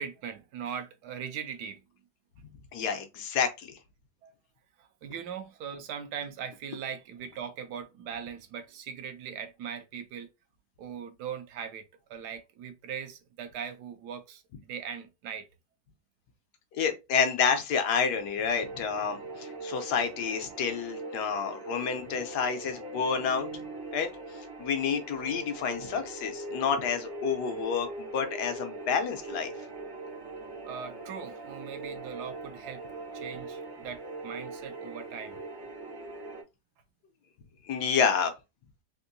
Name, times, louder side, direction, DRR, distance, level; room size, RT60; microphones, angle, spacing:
voice 1, 0.0-1.8 4.2-4.3 4.8-10.3 10.8-14.4 14.7-15.5 23.5-23.6 30.6-32.8 33.1-35.4, right 8 dB, 70° right, 1.1 m, -40 dB
voice 2, 2.7-3.8 16.8-23.5 23.9-24.1 24.6-29.5 37.7-38.3, left 6 dB, 70° left, 1.2 m, -29 dB
sound 1, 18.5-36.4, right 2 dB, 35° right, 0.4 m, -41 dB
3.6 x 2.6 x 2.6 m
omnidirectional pair, 2.0 m